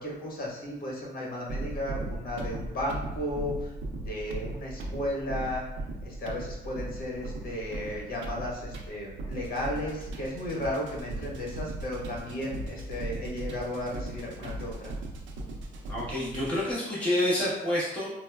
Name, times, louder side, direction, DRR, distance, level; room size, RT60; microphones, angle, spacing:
voice 1, 0.0-5.7 6.0-14.9, left 1 dB, 50° left, -3 dB, 1.2 m, -34 dB
sound 1, 1.5-16.7, right 2 dB, 75° right, 0.5 m, -38 dB
voice 2, 15.9-18.1, left 1 dB, 5° left, -9 dB, 1.2 m, -28 dB
4.5 x 2.1 x 2.3 m, 0.95 s
cardioid pair, 90°, 20 cm